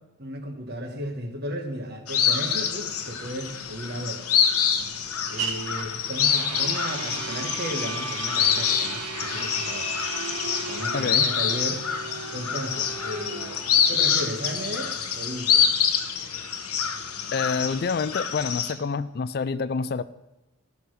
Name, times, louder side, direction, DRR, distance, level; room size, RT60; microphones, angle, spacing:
voice 1, 0.2-4.3 5.3-9.9 10.6-11.9 12.3-15.7, equal, 45° right, 5 dB, 1.5 m, -34 dB
sound 1, 2.1-18.7, left 7 dB, 85° left, 1.1 m, -26 dB
sound 2, 3.0-16.8, right 4 dB, 80° right, 1.6 m, -37 dB
voice 2, 10.9-11.3 17.3-20.0, left 5 dB, 45° left, 15 dB, 0.4 m, -27 dB
14.0 x 6.6 x 6.2 m, 1.0 s
head